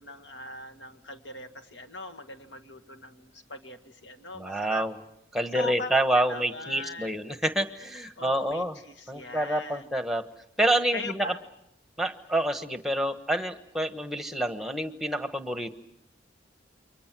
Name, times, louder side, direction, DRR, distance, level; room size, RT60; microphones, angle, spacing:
voice 1, 0.0-4.9 5.5-7.2 8.2-8.6 9.0-9.8 10.9-11.4, left 2 dB, 80° left, 6 dB, 2.0 m, -40 dB
voice 2, 4.3-4.9 5.3-8.8 9.1-10.2 10.6-11.3 12.0-15.7, right 1 dB, ahead, 8 dB, 1.2 m, -27 dB
28.5 x 24.0 x 6.1 m, 0.79 s
head